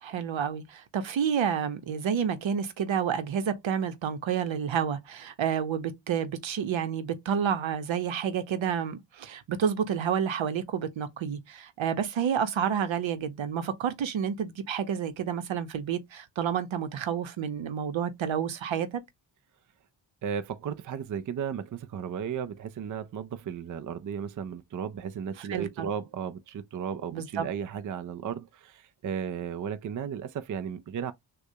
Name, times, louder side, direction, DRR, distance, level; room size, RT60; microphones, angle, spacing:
voice 1, 0.0-19.0 25.5-25.9 27.1-27.5, right 8 dB, 75° right, 0.9 m, -29 dB
voice 2, 20.2-31.1, right 7 dB, 45° right, 0.5 m, -35 dB
6.4 x 2.4 x 2.7 m
wide cardioid pair, 140°, 46 cm